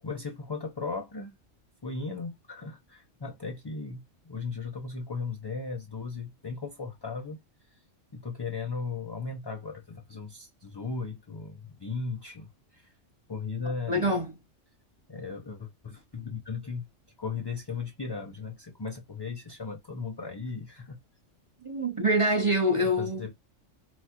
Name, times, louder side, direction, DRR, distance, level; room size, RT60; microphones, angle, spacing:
voice 1, 0.0-1.4 1.8-7.4 7.7-7.8 8.1-12.9 13.3-14.1 15.1-16.9 17.2-21.0 23.0-23.3, left 4 dB, 30° left, 0.5 m, -37 dB
voice 2, 13.9-14.3 21.6-23.3, equal, 30° right, 0.6 m, -25 dB
5.8 x 2.4 x 2.9 m
omnidirectional pair, 1.3 m